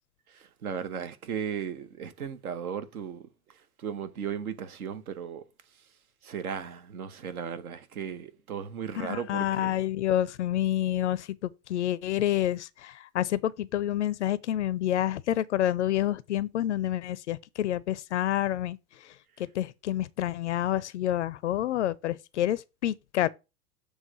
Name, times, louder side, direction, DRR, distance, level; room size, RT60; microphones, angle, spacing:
voice 1, 0.3-3.3 3.8-5.4 6.2-9.8, right 7 dB, 60° right, 1.0 m, -36 dB
voice 2, 9.0-18.8 19.4-23.3, left 12 dB, 50° left, 0.4 m, -28 dB
7.2 x 3.3 x 6.1 m
figure-of-eight pair, 90°, 48 cm